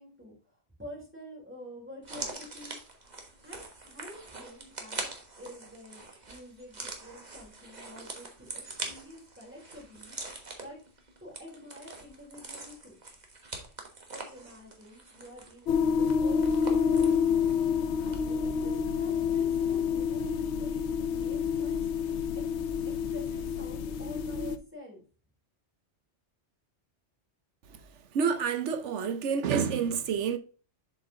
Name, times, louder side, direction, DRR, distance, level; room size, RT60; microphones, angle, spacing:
voice 1, 0.0-2.8 3.4-5.1 5.4-8.6 8.9-10.2 10.6-10.8 11.2-13.0 14.1-17.2 18.0-21.9 22.3-22.4 23.0-25.0, left 1 dB, 10° right, 3.4 m, -48 dB
sound 1, 2.0-17.7 18.0-18.2, right 3 dB, 35° right, 1.4 m, -43 dB
sound 2, 15.7-24.6, left 6 dB, 70° left, 0.9 m, -28 dB
voice 2, 28.1-30.4, right 6 dB, 75° right, 1.0 m, -28 dB
7.5 x 4.9 x 3.7 m
omnidirectional pair, 1.2 m